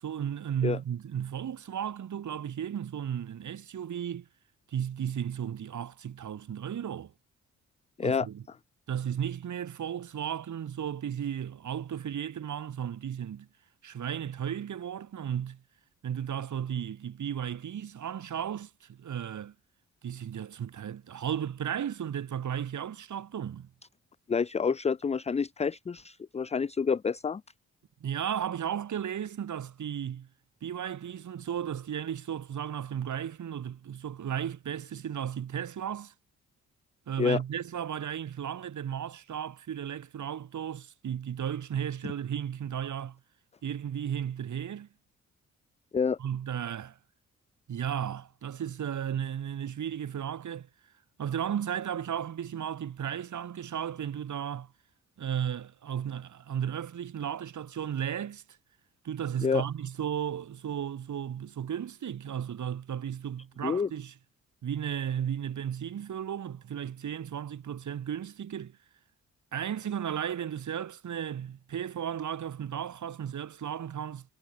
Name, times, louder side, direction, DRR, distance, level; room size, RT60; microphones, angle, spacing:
voice 1, 0.0-4.3 4.7-7.1 8.0-8.4 8.9-13.5 13.8-15.6 16.0-19.5 20.0-23.7 28.0-30.3 30.6-36.1 37.1-43.2 43.6-44.9 46.2-47.0 47.7-50.7 51.2-54.7 55.2-58.4 59.0-64.1 64.6-68.8 69.5-74.3, right 9 dB, 55° right, 1.7 m, -34 dB
voice 2, 24.3-27.4 37.2-37.4 45.9-46.2 59.4-59.6 63.6-63.9, left 5 dB, 20° left, 0.5 m, -28 dB
hypercardioid pair, 45°, 35 cm